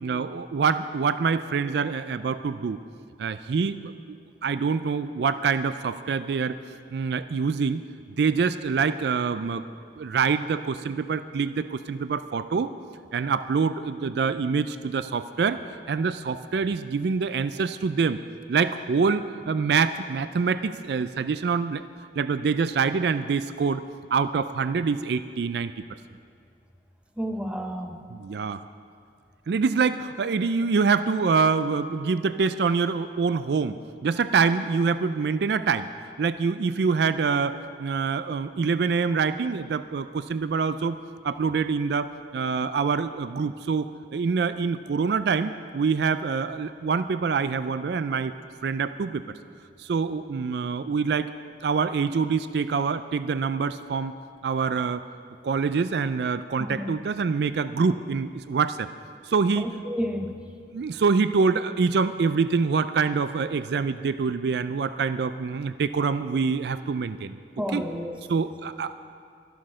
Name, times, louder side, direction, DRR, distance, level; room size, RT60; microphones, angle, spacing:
voice 1, 0.0-2.8 3.2-4.2 4.4-6.6 6.9-7.8 8.2-9.6 10.0-12.7 13.1-15.6 15.9-18.2 18.5-21.8 22.2-23.8 24.1-25.7 28.1-28.6 29.5-35.9 36.2-41.0 41.2-48.3 48.6-49.2 49.8-51.3 51.6-54.1 54.4-55.1 55.4-58.9 59.2-59.7 60.7-67.4 67.7-67.8 68.3-68.9, right 5 dB, 65° right, 12 dB, 0.4 m, -25 dB
voice 2, 27.2-28.0 56.6-56.9 59.6-60.4 67.6-68.2, equal, 5° right, 3 dB, 0.9 m, -31 dB
12.5 x 11.5 x 6.3 m, 2.2 s
head